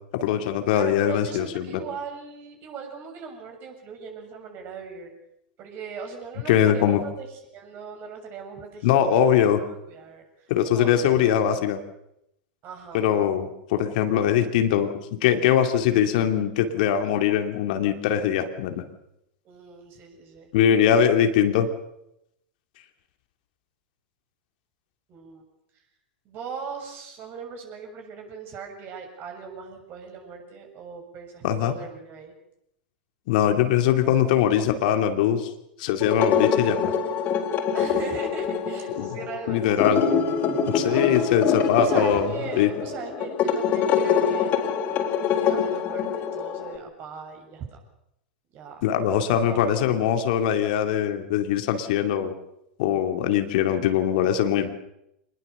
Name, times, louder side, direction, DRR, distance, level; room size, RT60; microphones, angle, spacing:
voice 1, 0.1-1.8 6.5-7.0 8.8-9.6 10.5-11.8 12.9-18.8 20.5-21.7 31.4-31.8 33.3-35.5 35.8-36.9 39.0-39.2 39.5-40.0 40.7-42.7 48.8-52.3 52.8-54.7, left 9 dB, 55° left, 7 dB, 2.4 m, -22 dB
voice 2, 0.7-5.1 5.6-11.6 12.6-13.3 19.5-20.5 25.1-25.4 26.3-32.3 37.7-39.9 40.9-44.6 45.3-47.7 48.5-48.8 49.4-49.9, right 5 dB, 40° right, 3 dB, 7.2 m, -39 dB
sound 1, 36.0-46.8, left 7 dB, 40° left, 4.5 m, -25 dB
25.5 x 20.0 x 6.9 m, 0.81 s
hypercardioid pair, 95°, 5 cm